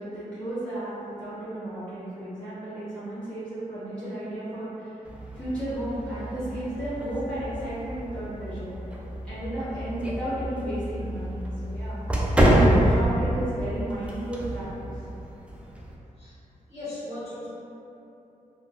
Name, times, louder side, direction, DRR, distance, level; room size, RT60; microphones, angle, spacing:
voice 1, 0.0-5.0 5.3-8.7 9.2-12.0 12.6-14.9, right 1 dB, 5° left, -13 dB, 1.1 m, -34 dB
sound 1, 5.0-15.9, right 1 dB, 10° right, 0.4 m, -27 dB
voice 2, 16.7-17.5, left 1 dB, 50° left, -13 dB, 1.5 m, -37 dB
3.6 x 2.1 x 2.5 m, 2.9 s
wide cardioid pair, 95°, 15 cm